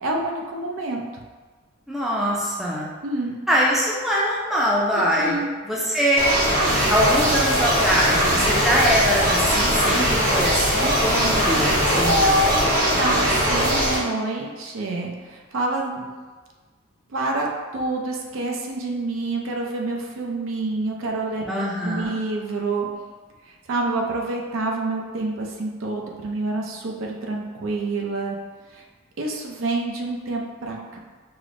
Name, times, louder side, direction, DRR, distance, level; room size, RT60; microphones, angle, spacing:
voice 1, 0.0-1.0 3.0-3.4 4.9-5.5 11.9-12.5 12.8-16.1 17.1-17.5 17.7-22.9 23.7-28.4 28.7-28.8 29.2-31.0, right 2 dB, 75° right, 0 dB, 0.5 m, -27 dB
voice 2, 1.9-2.9 3.5-6.3 6.9-12.8 21.5-22.2, equal, ahead, -6 dB, 0.4 m, -23 dB
sound 1, 6.2-14.0, right 1 dB, 40° right, 0.9 m, -21 dB
sound 2, 6.7-12.7, left 2 dB, 60° left, 0.4 m, -30 dB
4.8 x 2.0 x 2.5 m, 1.4 s
head